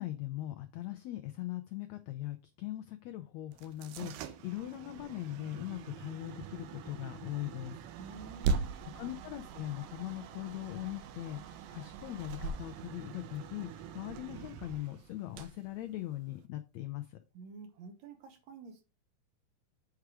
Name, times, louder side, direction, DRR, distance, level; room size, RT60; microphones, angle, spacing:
voice 1, 0.0-7.8 8.9-17.2, left 15 dB, 90° left, 1.5 m, -40 dB
sound 1, 3.5-16.5, right 5 dB, 85° right, 2.5 m, -41 dB
voice 2, 8.0-8.7 17.3-18.8, right 4 dB, 65° right, 2.1 m, -49 dB
7.9 x 4.8 x 4.8 m
omnidirectional pair, 3.9 m